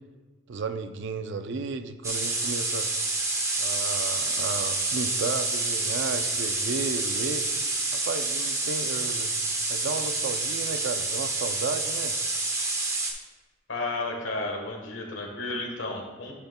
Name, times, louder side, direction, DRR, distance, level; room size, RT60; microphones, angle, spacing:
voice 1, 0.5-2.9 3.6-7.5 8.0-9.3 9.7-12.2, right 4 dB, 60° right, 9 dB, 0.5 m, -33 dB
sound 1, 2.0-13.1, right 2 dB, 15° right, 0.8 m, -28 dB
voice 2, 13.7-16.3, left 2 dB, 70° left, 1 dB, 1.4 m, -32 dB
9.9 x 6.7 x 2.2 m, 1.3 s
head